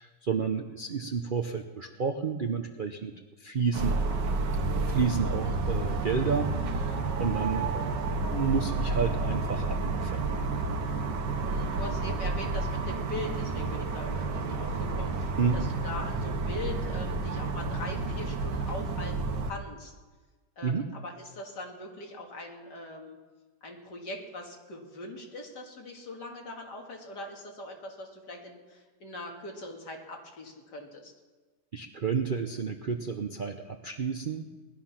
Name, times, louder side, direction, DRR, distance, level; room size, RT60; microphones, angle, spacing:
voice 1, 0.0-4.0 4.9-7.9 8.3-10.3 15.4-15.6 20.6-20.9 31.7-34.4, right 6 dB, 55° right, 6 dB, 0.5 m, -31 dB
sound 1, 3.7-19.5, right 3 dB, 80° right, 1.8 m, -30 dB
voice 2, 11.4-19.9 20.6-23.2 23.6-31.1, left 2 dB, 70° left, 1 dB, 2.7 m, -41 dB
19.5 x 11.5 x 5.8 m, 1.3 s
omnidirectional pair, 1.9 m